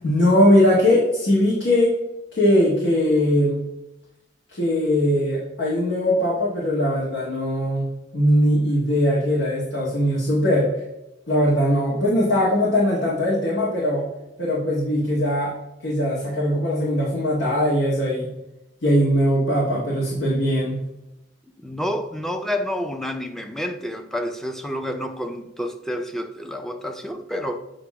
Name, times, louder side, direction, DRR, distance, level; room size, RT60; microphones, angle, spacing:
voice 1, 0.0-1.9 2.3-3.6 4.5-7.9 8.1-10.7 11.3-14.0 14.4-15.5 15.8-18.3 18.8-20.8, equal, 90° left, 1.6 m, -20 dB
voice 2, 21.6-27.6, equal, ahead, 0.4 m, -29 dB
7.9 x 2.9 x 4.8 m
head